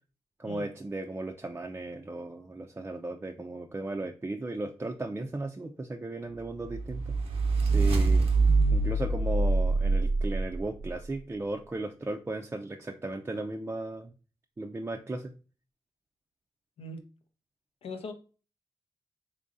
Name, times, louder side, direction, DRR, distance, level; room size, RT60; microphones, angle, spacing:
voice 1, 0.4-7.2 7.6-8.3 8.7-14.1 14.6-15.3, right 2 dB, 25° right, 2 dB, 0.4 m, -36 dB
sound 1, 6.7-10.9, right 3 dB, 85° right, 0.6 m, -25 dB
voice 2, 17.8-18.1, left 2 dB, 85° left, 6 dB, 0.6 m, -39 dB
3.6 x 3.0 x 2.5 m, 0.35 s
cardioid pair, 55°, 10 cm